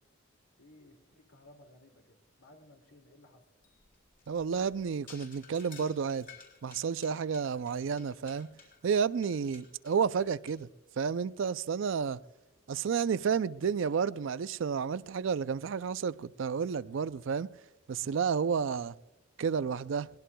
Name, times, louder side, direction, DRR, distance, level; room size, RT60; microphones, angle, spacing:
voice 1, 0.6-3.5, left 1 dB, 85° left, 2.3 m, -58 dB
sound 1, 3.6-10.5, left 6 dB, 40° left, 4.3 m, -55 dB
voice 2, 4.3-6.3 6.6-8.5 8.8-10.7 11.0-12.2 12.7-17.5 17.9-19.0 19.4-20.1, right 6 dB, 65° right, 0.4 m, -31 dB
22.5 x 19.5 x 2.3 m
head